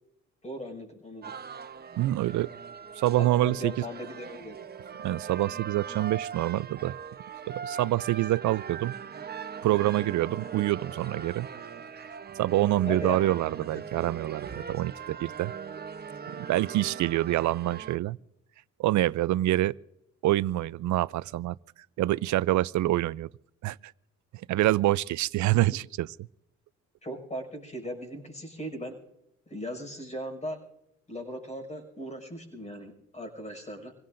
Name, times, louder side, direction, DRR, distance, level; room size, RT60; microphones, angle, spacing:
voice 1, 0.4-1.3 3.2-4.6 12.9-13.2 27.0-28.9 29.5-30.6 31.1-33.9, equal, 20° left, 5.8 m, -38 dB
sound 1, 1.2-18.0, right 7 dB, 35° right, 0.9 m, -40 dB
voice 2, 2.0-2.5 3.0-3.7 5.0-7.0 7.5-8.9 9.6-11.5 12.4-15.5 16.4-18.2 18.8-19.7 20.2-21.5 22.0-23.3 23.6-23.8 24.5-26.1, right 15 dB, 70° right, 0.5 m, -26 dB
27.0 x 17.0 x 2.6 m
cardioid pair, 90°, 30 cm